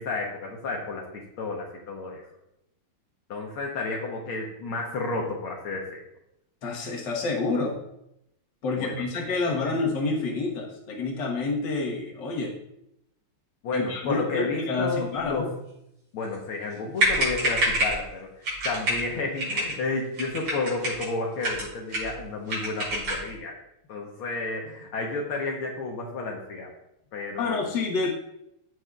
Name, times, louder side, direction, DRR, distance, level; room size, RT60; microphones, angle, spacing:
voice 1, 0.0-2.2 3.3-6.0 8.8-9.2 13.6-15.5 16.1-23.5 23.9-26.7 27.1-27.7, left 3 dB, 75° left, -1 dB, 2.0 m, -31 dB
voice 2, 6.6-7.8 8.6-12.5 13.7-15.5 27.4-28.1, left 3 dB, 55° left, -1 dB, 2.0 m, -28 dB
sound 1, 16.7-16.8 17.0-18.0 18.4-19.0 19.4-19.8 20.1-21.1 21.4-22.2 22.5-23.3, right 1 dB, 90° right, 4.4 m, -27 dB
14.5 x 6.3 x 2.4 m, 0.81 s
omnidirectional pair, 2.4 m